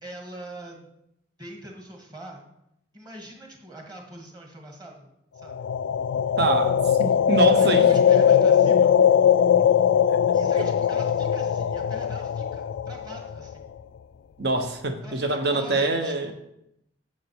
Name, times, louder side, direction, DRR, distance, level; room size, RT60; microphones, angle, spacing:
voice 1, 0.0-0.9 1.4-2.4 2.9-5.1 5.3-5.6 7.4-9.0 10.3-13.7 15.0-16.3, right 1 dB, 20° right, 2 dB, 1.6 m, -43 dB
sound 1, 5.5-13.5, left 8 dB, 75° left, 0.3 m, -20 dB
voice 2, 6.4-7.9 9.6-9.7 14.4-16.3, right 2 dB, 55° right, 6 dB, 1.1 m, -25 dB
8.7 x 7.5 x 4.7 m, 0.80 s
head